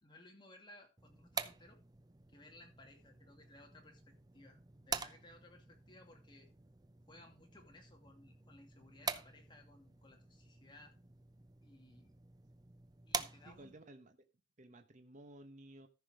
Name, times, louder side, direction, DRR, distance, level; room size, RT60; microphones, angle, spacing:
voice 1, 0.0-1.8 2.3-6.5 7.1-10.9 11.6-12.2 13.1-13.7, left 1 dB, 25° left, 2.7 m, -60 dB
sound 1, 1.0-13.9, right 5 dB, 20° right, 0.6 m, -47 dB
voice 2, 13.5-14.2 14.6-15.9, right 1 dB, 45° right, 1.0 m, -55 dB
14.0 x 6.0 x 4.6 m
head